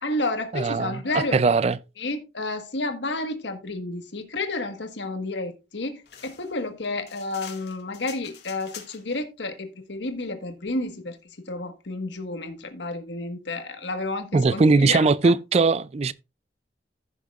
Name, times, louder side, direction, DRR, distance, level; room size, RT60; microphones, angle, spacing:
voice 1, 0.0-1.5 2.0-11.2 11.5-15.3, left 2 dB, 80° left, 1.5 m, -31 dB
voice 2, 0.5-1.8 14.3-16.1, right 4 dB, 35° right, 0.4 m, -20 dB
sound 1, 6.1-9.2, left 8 dB, 65° left, 2.0 m, -45 dB
15.0 x 6.4 x 2.4 m
head